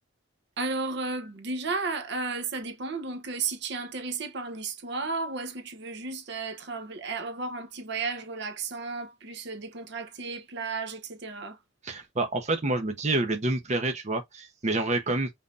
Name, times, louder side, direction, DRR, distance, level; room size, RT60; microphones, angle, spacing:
voice 1, 0.6-11.6, right 4 dB, 65° right, 0.9 m, -33 dB
voice 2, 11.8-15.3, right 2 dB, 35° right, 0.9 m, -28 dB
5.4 x 2.8 x 2.5 m
head